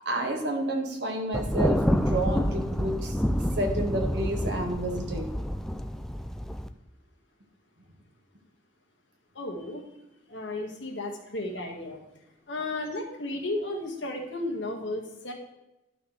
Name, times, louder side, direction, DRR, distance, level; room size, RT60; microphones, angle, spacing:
voice 1, 0.0-3.1 3.6-5.3, right 1 dB, 65° right, 2 dB, 1.6 m, -30 dB
Thunder, 1.3-6.7, equal, ahead, 0.3 m, -28 dB
voice 2, 9.4-9.8 10.3-12.0 12.5-15.3, left 2 dB, 85° left, 1 dB, 1.8 m, -34 dB
12.0 x 5.9 x 3.3 m, 0.93 s
head